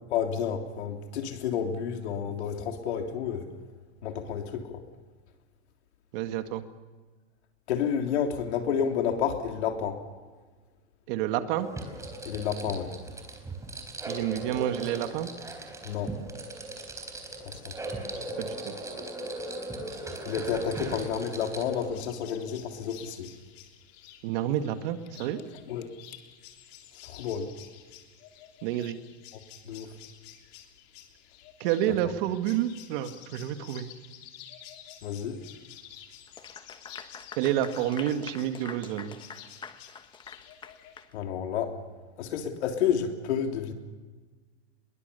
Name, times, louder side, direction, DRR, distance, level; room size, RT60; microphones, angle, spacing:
voice 1, 0.1-3.5 4.0-4.8 7.7-10.0 12.2-12.9 15.8-16.1 17.4-17.7 20.2-23.3 25.6-25.9 27.0-27.5 29.3-30.0 32.0-32.1 35.0-35.4 41.1-41.8 42.2-43.7, left 8 dB, 75° left, 4 dB, 3.5 m, -30 dB
voice 2, 6.1-6.6 11.1-11.7 14.1-15.3 18.2-18.7 24.2-25.4 28.6-29.0 31.6-33.9 37.4-39.2, right 11 dB, 50° right, 8 dB, 2.0 m, -29 dB
sound 1, 11.6-21.9, right 2 dB, 10° right, 4.0 m, -38 dB
sound 2, 21.9-41.0, left 11 dB, 45° left, 3.2 m, -51 dB
Clapping / Applause, 36.3-41.1, left 6 dB, 15° left, 1.1 m, -45 dB
24.5 x 22.0 x 6.9 m, 1.4 s
supercardioid pair, 140°, 34 cm